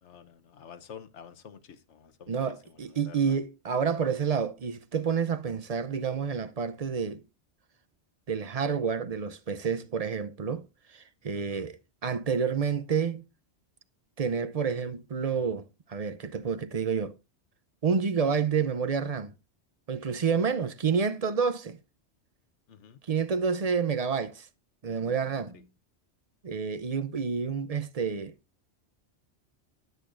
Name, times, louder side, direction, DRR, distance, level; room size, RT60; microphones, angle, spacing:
voice 1, 0.0-3.4 11.3-11.6 20.4-20.7 22.7-23.0 25.5-25.6, left 7 dB, 90° left, 1.2 m, -50 dB
voice 2, 2.3-7.2 8.3-11.8 12.0-13.3 14.2-17.2 17.8-19.3 19.9-21.8 23.0-24.5 24.8-25.6 26.4-28.3, right 6 dB, 40° right, 0.6 m, -29 dB
18.5 x 6.6 x 2.5 m
omnidirectional pair, 1.1 m